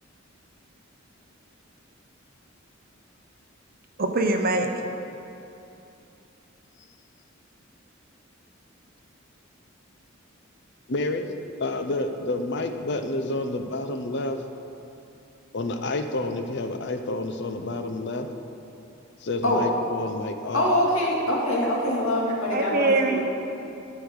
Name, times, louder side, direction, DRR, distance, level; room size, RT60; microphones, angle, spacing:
voice 1, 4.0-4.7 22.5-23.2, right 3 dB, 45° right, 4 dB, 0.9 m, -23 dB
voice 2, 10.9-11.3 11.6-14.4 15.5-18.3 19.2-20.7, left 2 dB, 60° left, 6 dB, 0.7 m, -29 dB
voice 3, 20.5-23.2, left 1 dB, 85° left, -4 dB, 2.4 m, -24 dB
11.5 x 5.1 x 8.1 m, 2.8 s
head